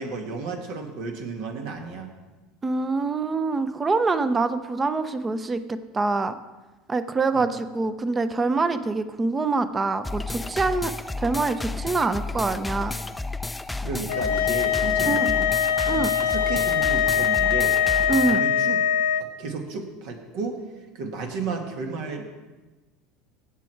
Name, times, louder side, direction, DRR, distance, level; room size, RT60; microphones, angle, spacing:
voice 1, 0.0-2.1 7.3-7.5 13.8-15.5 15.9-17.8 18.3-18.8 19.4-20.6 20.9-22.2, right 4 dB, 65° right, 2 dB, 2.1 m, -33 dB
voice 2, 2.6-6.4 6.9-12.9 15.1-15.3 15.9-16.1 18.1-18.4, right 3 dB, 20° right, 11 dB, 0.8 m, -25 dB
sound 1, 10.0-18.4, left 3 dB, 10° left, 0.5 m, -32 dB
sound 2, 14.1-19.2, left 9 dB, 85° left, 0.6 m, -22 dB
16.5 x 6.2 x 4.6 m, 1.2 s
hypercardioid pair, 85°, 0 cm